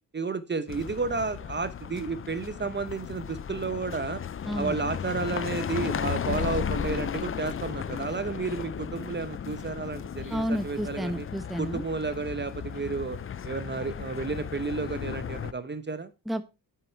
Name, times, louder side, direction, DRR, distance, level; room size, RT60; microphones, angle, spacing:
voice 1, 0.1-4.2 4.6-11.2 11.6-16.1, right 4 dB, 25° right, 12 dB, 0.9 m, -32 dB
sound 1, 0.7-15.5, left 8 dB, 35° left, 0.5 m, -35 dB
voice 2, 4.4-4.8 10.3-11.8 16.3-16.4, equal, ahead, 11 dB, 0.9 m, -31 dB
9.5 x 6.0 x 4.5 m, 0.27 s
cardioid pair, 90°, 40 cm